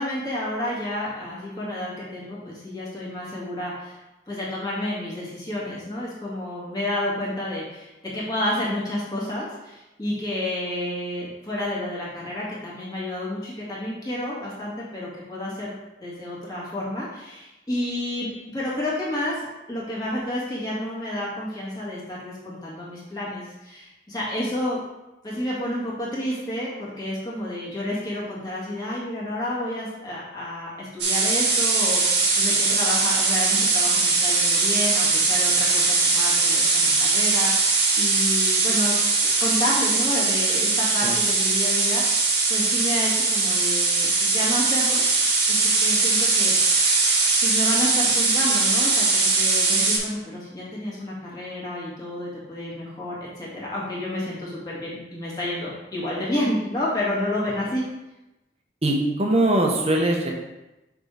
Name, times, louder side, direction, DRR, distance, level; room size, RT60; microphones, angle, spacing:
voice 1, 0.0-4.0 4.3-15.7 16.0-24.8 25.2-38.9 39.2-45.0 45.5-46.7 47.4-57.8, left 1 dB, 20° left, -7 dB, 2.1 m, -30 dB
sound 1, 31.0-50.0, right 3 dB, 75° right, 1.6 m, -21 dB
voice 2, 58.8-60.3, right 1 dB, 35° right, 1 dB, 1.0 m, -21 dB
6.6 x 3.6 x 4.9 m, 0.99 s
head